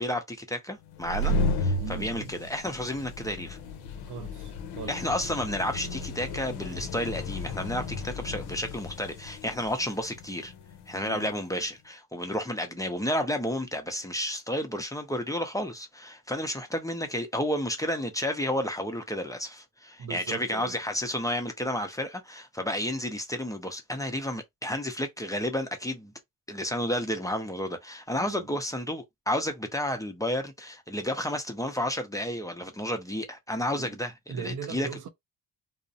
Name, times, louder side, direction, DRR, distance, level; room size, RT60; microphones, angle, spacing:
voice 1, 0.0-3.6 4.9-10.5 10.9-26.1 26.5-34.9, left 1 dB, 10° left, 0.5 m, -31 dB
sound 1, 0.9-11.4, left 1 dB, 75° left, 0.6 m, -34 dB
voice 2, 1.8-2.3 4.0-5.0 11.0-11.3 20.0-20.8 28.1-28.6 33.8-34.0 34.3-35.1, right 7 dB, 50° right, 0.7 m, -39 dB
2.4 x 2.0 x 2.6 m
cardioid pair, 75°, 39 cm